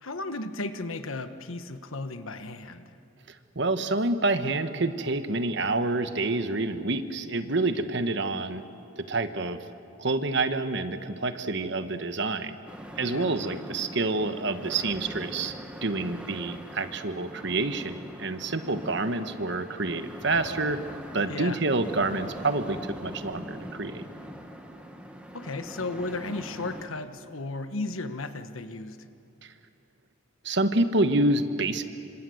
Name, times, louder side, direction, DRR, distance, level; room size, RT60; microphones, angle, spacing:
voice 1, 0.0-2.9 13.0-13.3 21.3-21.6 25.3-29.1, left 2 dB, 80° left, 9 dB, 1.3 m, -35 dB
voice 2, 3.5-8.6 9.0-9.6 10.0-12.5 13.0-15.5 15.8-20.8 21.1-24.0 29.4-29.5 30.4-31.8, right 2 dB, 55° right, 9 dB, 1.2 m, -28 dB
sound 1, 12.7-26.9, equal, 5° right, 1.7 m, -42 dB
26.5 x 26.0 x 7.9 m, 2.5 s
head